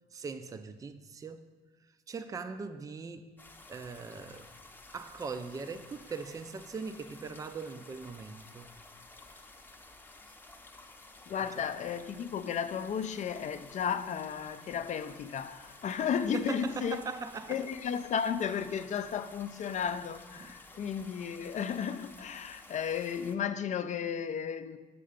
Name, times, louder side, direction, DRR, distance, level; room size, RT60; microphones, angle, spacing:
voice 1, 0.1-1.4 2.1-3.3 3.7-4.5 4.9-8.7 16.3-17.6 20.4-20.5, right 4 dB, 20° right, 0.4 m, -40 dB
sound 1, 3.4-23.4, left 2 dB, 10° left, 0.7 m, -53 dB
voice 2, 11.3-17.0 17.5-24.8, left 7 dB, 45° left, 0.5 m, -34 dB
6.9 x 6.4 x 5.1 m
cardioid pair, 110°, 17 cm